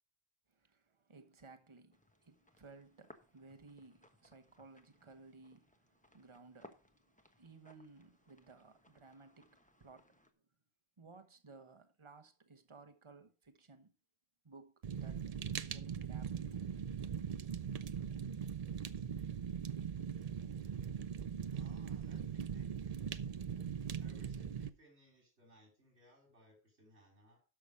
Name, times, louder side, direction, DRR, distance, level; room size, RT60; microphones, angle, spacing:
voice 1, 0.5-10.3 11.0-13.9 14.4-16.6, right 3 dB, 30° right, 1.2 m, -59 dB
sound 1, 1.9-10.3, left 1 dB, 5° left, 1.0 m, -64 dB
Fire, 14.8-24.7, right 7 dB, 45° right, 0.5 m, -40 dB
voice 2, 21.5-23.0 24.0-27.4, right 1 dB, 90° right, 3.9 m, -64 dB
12.0 x 6.2 x 4.9 m
omnidirectional pair, 1.1 m